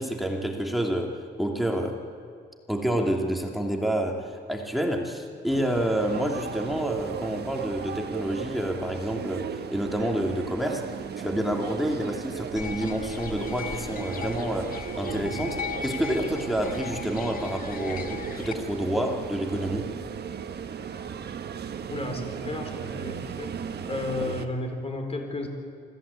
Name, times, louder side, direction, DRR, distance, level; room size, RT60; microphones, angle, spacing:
voice 1, 0.0-2.0 2.7-10.8 11.2-19.9, right 1 dB, ahead, 2 dB, 2.7 m, -28 dB
sound 1, 5.5-24.5, right 7 dB, 55° right, 1.5 m, -36 dB
sound 2, 12.6-18.5, left 6 dB, 45° left, 1.6 m, -37 dB
voice 2, 21.9-23.6 23.9-25.5, left 2 dB, 30° left, 4 dB, 4.3 m, -33 dB
25.0 x 15.0 x 8.5 m, 2.2 s
cardioid pair, 90°, 20 cm